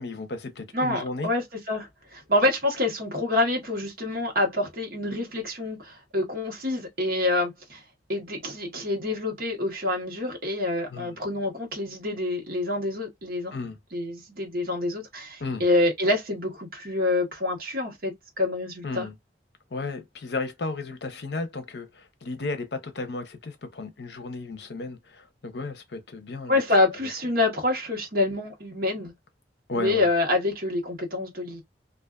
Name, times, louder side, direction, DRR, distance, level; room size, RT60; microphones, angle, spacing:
voice 1, 0.0-1.3 10.9-11.2 13.5-13.8 15.4-15.6 18.8-19.1 19.7-26.6 29.7-30.1, left 3 dB, 70° left, 0.7 m, -34 dB
voice 2, 0.7-7.8 8.1-13.5 13.9-19.1 26.5-29.1 29.7-31.6, left 2 dB, 55° right, 1.0 m, -27 dB
2.5 x 2.4 x 2.3 m
head